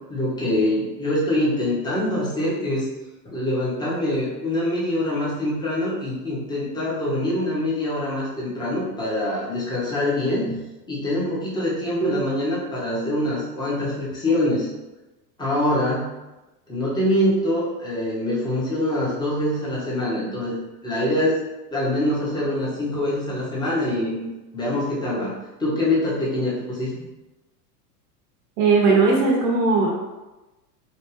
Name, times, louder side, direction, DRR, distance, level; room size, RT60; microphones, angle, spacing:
voice 1, 0.1-2.9 3.2-10.6 10.9-14.7 15.4-16.1 16.7-20.6 20.8-21.4 21.7-24.3 24.5-25.3 25.6-26.9, left 1 dB, 10° left, -7 dB, 1.1 m, -24 dB
voice 2, 28.6-29.9, right 4 dB, 40° right, -2 dB, 0.9 m, -18 dB
4.3 x 2.5 x 3.4 m, 1.1 s
supercardioid pair, 130°, 48 cm